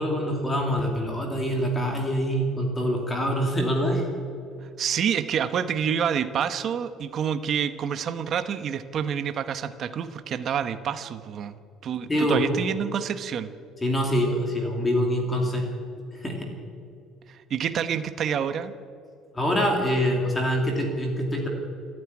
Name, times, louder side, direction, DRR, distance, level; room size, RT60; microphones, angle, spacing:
voice 1, 0.0-4.0 12.1-12.4 13.8-15.7 16.1-16.5 19.3-21.5, equal, 10° left, 1 dB, 2.6 m, -25 dB
voice 2, 4.6-11.6 11.8-13.5 17.3-18.7, right 8 dB, 35° right, 10 dB, 0.9 m, -28 dB
28.5 x 9.7 x 9.8 m, 2.5 s
cardioid pair, 180°, 0 cm